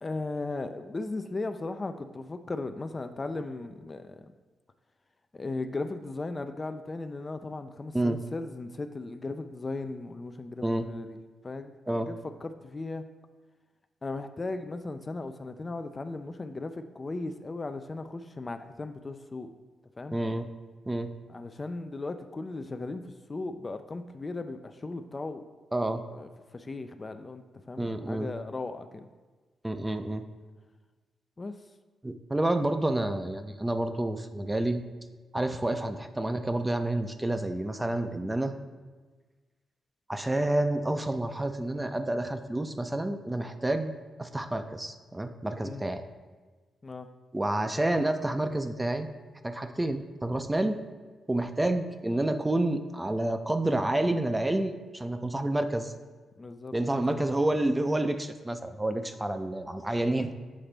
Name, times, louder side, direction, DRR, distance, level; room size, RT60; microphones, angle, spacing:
voice 1, 0.0-4.3 5.3-11.2 11.4-13.1 14.0-19.5 20.0-20.2 21.3-25.4 26.1-29.1 31.4-31.6 45.6-45.8 46.8-47.1 56.4-57.2, left 3 dB, 35° left, 8 dB, 0.4 m, -37 dB
voice 2, 20.1-20.5 20.9-21.1 25.7-26.0 27.8-28.3 29.6-30.3 32.0-34.8 35.3-38.5 40.1-43.9 44.2-46.0 47.3-49.1 49.4-50.8 51.3-55.9 56.7-60.3, right 1 dB, 15° right, 8 dB, 0.5 m, -29 dB
7.4 x 3.8 x 3.3 m, 1.4 s
supercardioid pair, 55°, 0 cm